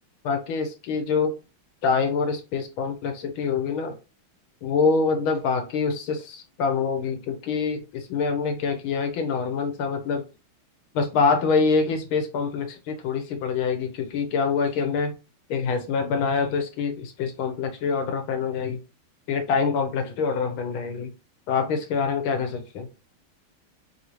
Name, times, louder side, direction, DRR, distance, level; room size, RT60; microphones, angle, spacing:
voice 1, 0.2-1.3 1.8-4.0 4.6-10.2 10.9-15.1 15.5-18.8 19.3-21.1 21.5-22.9, left 5 dB, 80° left, 1.6 m, -25 dB
4.8 x 2.7 x 2.9 m
omnidirectional pair, 2.3 m